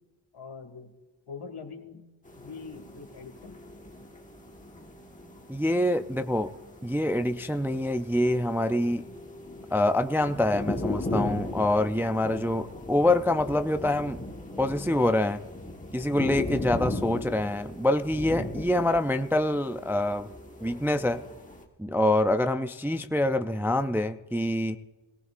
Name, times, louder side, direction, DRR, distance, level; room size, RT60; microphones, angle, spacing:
voice 1, 0.3-0.9 1.3-2.0 2.3-3.6 16.0-16.1, left 5 dB, 85° left, 5 dB, 2.0 m, -43 dB
sound 1, 2.2-21.6, left 2 dB, 15° left, 1.3 m, -38 dB
voice 2, 5.5-6.5 6.8-9.0 9.7-14.2 14.6-15.4 15.9-20.3 20.6-21.2 21.8-24.8, left 1 dB, 5° right, 8 dB, 0.3 m, -26 dB
18.0 x 18.0 x 2.5 m, 1.2 s
wide cardioid pair, 150°, 48 cm